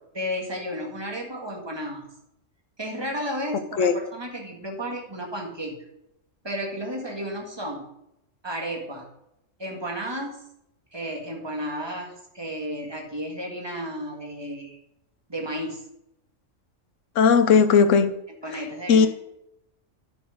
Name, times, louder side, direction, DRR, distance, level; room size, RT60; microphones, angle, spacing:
voice 1, 0.1-2.1 2.8-5.8 6.4-7.9 8.4-9.1 9.6-10.4 10.9-14.8 15.3-15.8 18.4-19.1, equal, 20° right, 1 dB, 1.9 m, -33 dB
voice 2, 17.2-18.1 18.9-19.1, left 6 dB, 75° left, 10 dB, 1.2 m, -17 dB
9.9 x 6.3 x 5.1 m, 0.82 s
omnidirectional pair, 1.3 m